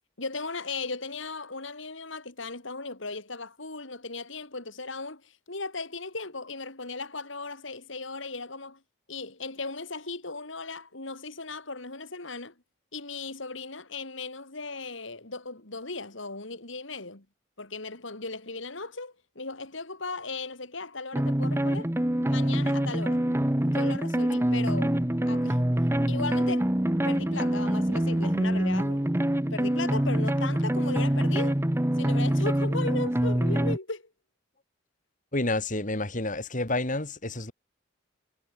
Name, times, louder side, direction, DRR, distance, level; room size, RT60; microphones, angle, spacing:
voice 1, 0.2-8.8 9.1-12.5 12.9-17.2 17.6-21.9 22.2-23.2 23.6-25.0 25.3-25.8 26.1-26.7 27.0-29.1 29.5-31.6 32.0-34.0, left 3 dB, 70° left, 3.3 m, -37 dB
sound 1, 21.1-33.8, right 1 dB, 10° right, 0.8 m, -25 dB
voice 2, 35.3-37.5, left 2 dB, 40° left, 2.9 m, -29 dB
head